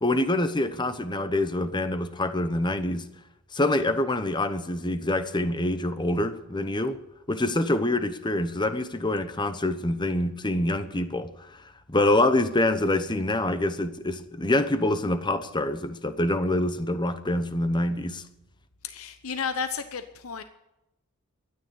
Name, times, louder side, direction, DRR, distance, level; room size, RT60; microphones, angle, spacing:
voice 1, 0.0-3.1 3.5-7.0 7.3-11.3 11.9-18.2, left 1 dB, 20° left, 0.9 m, -26 dB
voice 2, 18.8-20.4, left 6 dB, 70° left, 0.9 m, -32 dB
13.0 x 9.7 x 8.5 m
head